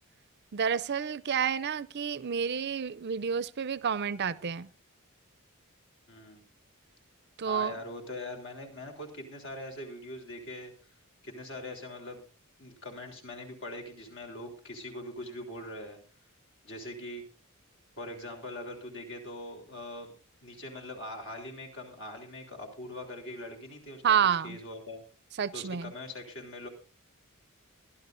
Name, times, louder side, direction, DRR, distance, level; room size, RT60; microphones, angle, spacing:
voice 1, 0.5-4.7 7.4-7.8 24.0-24.6 25.4-25.9, right 7 dB, 50° right, 0.5 m, -29 dB
voice 2, 6.1-6.4 7.4-10.7 11.2-12.3 12.6-16.0 16.6-17.2 18.0-20.1 20.4-24.2 24.4-25.0 25.5-26.7, left 1 dB, 60° left, 3.7 m, -42 dB
23.5 x 12.0 x 2.6 m
head